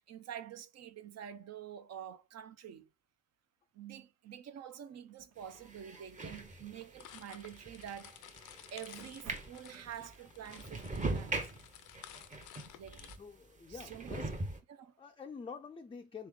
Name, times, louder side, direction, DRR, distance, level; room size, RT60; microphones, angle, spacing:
voice 1, 0.0-2.9 3.7-8.2 8.7-11.4 12.8-13.1 13.7-14.3 14.7-14.9, right 9 dB, 60° right, 0.6 m, -47 dB
sound 1, 5.1-6.2 6.7-7.4 8.3-8.8 9.1-10.1, right 4 dB, 75° right, 1.1 m, -57 dB
sound 2, 5.4-13.2 13.7-14.6, right 2 dB, 25° right, 0.9 m, -42 dB
sound 3, 7.0-13.2, left 12 dB, 85° left, 0.5 m, -54 dB
voice 2, 13.2-14.3 15.0-16.3, left 5 dB, 20° left, 0.4 m, -47 dB
3.5 x 3.1 x 3.5 m
cardioid pair, 90°, 30 cm